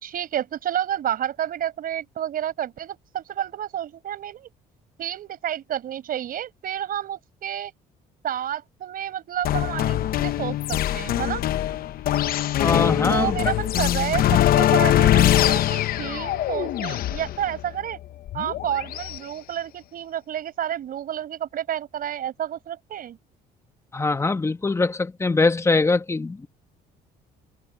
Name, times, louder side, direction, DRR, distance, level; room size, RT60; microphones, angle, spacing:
voice 1, 0.0-4.5 5.0-7.7 8.2-11.5 13.1-18.0 18.3-23.2, right 10 dB, 60° right, 5.2 m, -30 dB
sound 1, 9.4-19.2, left 12 dB, 60° left, 0.8 m, -22 dB
voice 2, 12.6-13.6 23.9-26.5, left 3 dB, 15° left, 1.2 m, -22 dB
cardioid pair, 110°, 17 cm